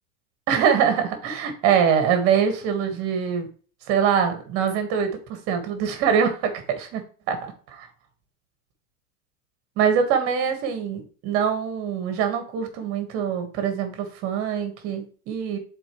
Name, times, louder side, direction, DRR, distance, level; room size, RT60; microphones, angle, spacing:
voice 1, 0.5-3.5 3.9-7.4 9.8-15.6, right 7 dB, 35° right, 7 dB, 1.5 m, -23 dB
9.9 x 4.3 x 3.1 m, 0.40 s
supercardioid pair, 175°, 42 cm